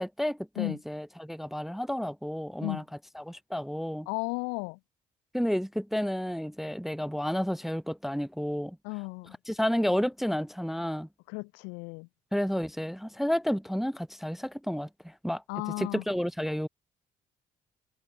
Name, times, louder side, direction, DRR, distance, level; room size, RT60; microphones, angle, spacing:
voice 1, 0.0-2.8 3.2-4.1 5.3-8.8 9.5-11.1 12.3-15.4 15.8-16.7, equal, ahead, 0.6 m, -31 dB
voice 2, 4.1-4.8 8.8-9.3 11.3-12.1 15.5-16.0, left 35 dB, 80° left, 1.3 m, -34 dB
hypercardioid pair, 50°, 18 cm